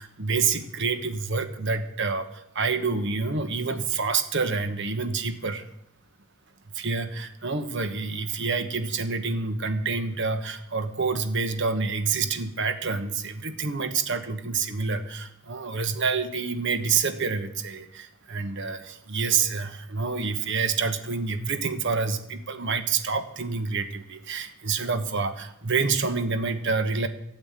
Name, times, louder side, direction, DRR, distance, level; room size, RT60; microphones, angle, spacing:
voice 1, 0.0-5.6 6.7-27.1, right 4 dB, 60° right, 9 dB, 1.2 m, -27 dB
12.5 x 8.0 x 8.8 m, 0.77 s
head